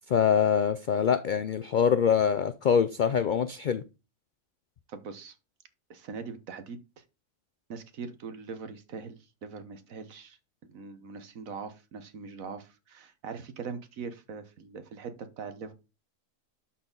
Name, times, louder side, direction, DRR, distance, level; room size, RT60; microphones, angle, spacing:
voice 1, 0.1-3.8, left 7 dB, 70° left, 0.4 m, -24 dB
voice 2, 4.9-5.3 5.9-7.0 7.7-10.4 10.7-15.7, right 5 dB, 80° right, 1.5 m, -41 dB
11.5 x 4.2 x 3.9 m
omnidirectional pair, 1.4 m